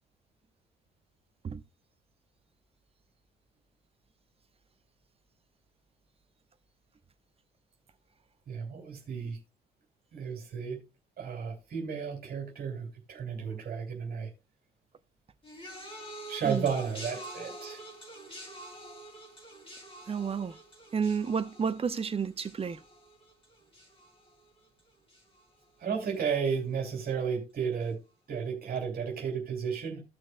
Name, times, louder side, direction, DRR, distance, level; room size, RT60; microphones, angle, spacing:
voice 1, 8.5-9.4 10.1-10.8 11.2-14.3 16.3-17.9 25.8-28.0 28.3-30.0, right 6 dB, 45° right, 2.9 m, -33 dB
sound 1, 15.4-24.8 25.1-25.6 26.5-26.6, right 1 dB, 25° left, 5.1 m, -47 dB
voice 2, 20.1-20.6 20.9-22.8, right 6 dB, 30° right, 0.9 m, -31 dB
16.0 x 6.4 x 2.3 m
figure-of-eight pair, 50°, 21 cm